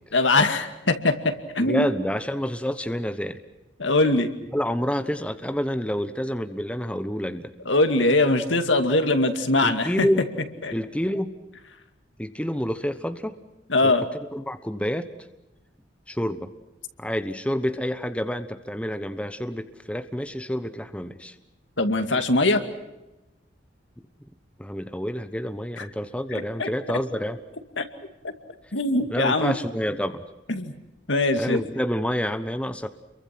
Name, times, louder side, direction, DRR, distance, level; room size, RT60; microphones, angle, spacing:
voice 1, 0.1-1.9 3.8-4.3 7.7-9.9 10.6-10.7 13.7-14.0 21.8-22.6 25.8-25.9 26.3-26.7 27.8-27.9 28.7-29.5 30.5-30.7 31.1-31.6, left 2 dB, 80° left, 7 dB, 2.4 m, -22 dB
voice 2, 1.6-3.4 4.5-7.5 9.6-10.3 10.7-11.3 12.2-13.3 13.8-14.0 14.3-15.1 16.1-16.5 17.0-21.3 24.6-27.4 29.1-30.2 31.4-32.9, equal, 5° left, 9 dB, 1.1 m, -28 dB
29.5 x 23.5 x 6.1 m, 0.99 s
head